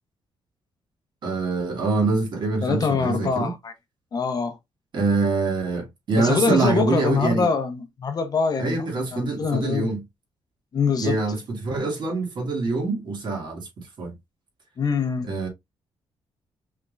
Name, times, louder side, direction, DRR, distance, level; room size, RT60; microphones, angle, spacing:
voice 1, 1.2-3.5 4.9-7.5 8.6-10.0 11.0-14.1 15.2-15.5, right 3 dB, 50° right, 2.4 m, -25 dB
voice 2, 2.6-3.7 4.1-4.6 6.2-9.9 10.7-11.2 14.8-15.3, left 5 dB, 40° left, 0.9 m, -24 dB
5.5 x 3.6 x 2.5 m
cardioid pair, 135°, 10 cm